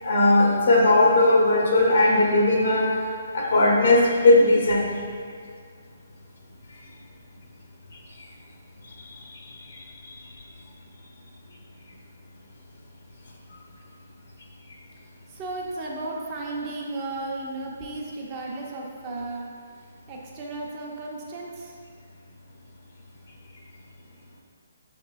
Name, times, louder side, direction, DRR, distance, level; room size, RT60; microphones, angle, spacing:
voice 1, 0.0-2.9 3.3-4.9, left 2 dB, 65° left, -1 dB, 0.9 m, -18 dB
voice 2, 15.3-19.5 20.1-21.8, right 2 dB, 30° right, -2 dB, 0.7 m, -34 dB
5.4 x 3.7 x 2.4 m, 2.1 s
figure-of-eight pair, 145°, 0 cm